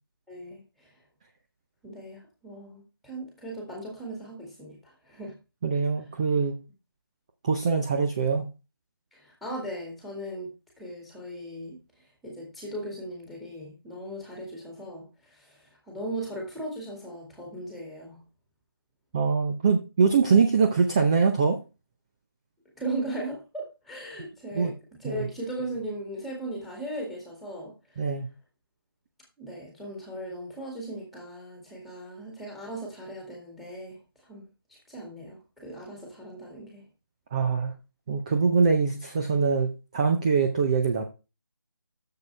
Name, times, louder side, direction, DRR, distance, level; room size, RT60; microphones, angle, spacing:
voice 1, 0.3-0.9 1.8-5.3 9.1-10.5 10.8-18.2 22.8-28.0 29.4-34.5 34.9-36.8, right 1 dB, ahead, -1 dB, 2.1 m, -38 dB
voice 2, 5.6-6.5 7.4-8.5 19.1-21.6 24.5-24.7 25.1-25.2 28.0-28.3 37.3-37.7 38.1-41.0, right 5 dB, 15° right, 4 dB, 0.7 m, -23 dB
10.5 x 7.4 x 3.3 m, 0.29 s
figure-of-eight pair, 170°, 13 cm